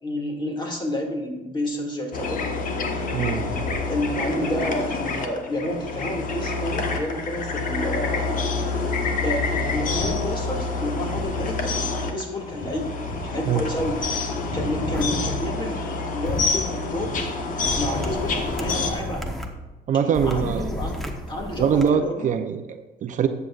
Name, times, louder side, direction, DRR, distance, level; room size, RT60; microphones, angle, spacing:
voice 1, 0.0-2.4 3.9-8.3 9.2-12.9 13.2-14.0 14.5-15.8 16.1-17.2 17.7-19.3 19.9-21.0 21.3-22.3, left 1 dB, 25° left, 1 dB, 2.3 m, -30 dB
sound 1, 2.1-18.9, left 3 dB, 50° left, 1.3 m, -27 dB
voice 2, 3.1-3.4 13.5-13.6 19.9-20.7 21.6-23.3, right 7 dB, 50° right, 8 dB, 0.6 m, -23 dB
sound 2, 14.9-15.0 16.3-16.5 17.6-19.5 20.1-21.9, equal, ahead, 1.0 m, -32 dB
13.0 x 8.2 x 2.5 m, 1.1 s
cardioid pair, 110°, 17 cm